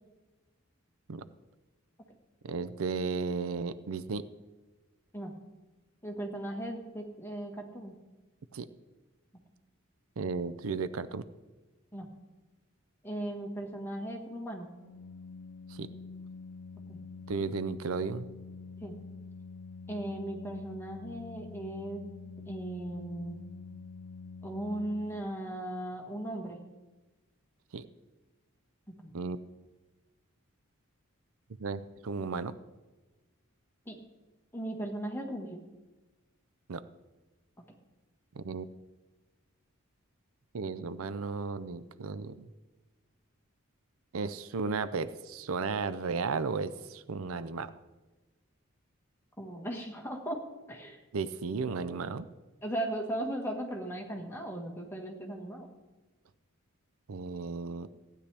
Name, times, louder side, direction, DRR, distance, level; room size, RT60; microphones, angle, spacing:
voice 1, 2.4-4.2 8.5-8.7 10.2-11.2 15.7-15.9 17.3-18.3 27.7-27.9 29.1-29.4 31.6-32.5 36.7-36.8 38.4-38.7 40.5-42.5 44.1-47.7 51.1-52.3 57.1-57.9, right 4 dB, 80° right, 14 dB, 0.5 m, -34 dB
voice 2, 6.0-7.9 11.9-12.1 13.0-14.7 16.9-17.0 18.8-18.9 19.9-22.0 22.5-23.4 24.4-26.6 29.0-29.1 33.9-34.0 34.5-35.6 49.4-50.4 50.7-51.0 52.6-55.7, right 1 dB, 10° left, 1 dB, 1.5 m, -37 dB
Organ, 14.8-25.6, left 4 dB, 75° left, 0.5 m, -46 dB
15.5 x 10.0 x 3.4 m, 1.2 s
head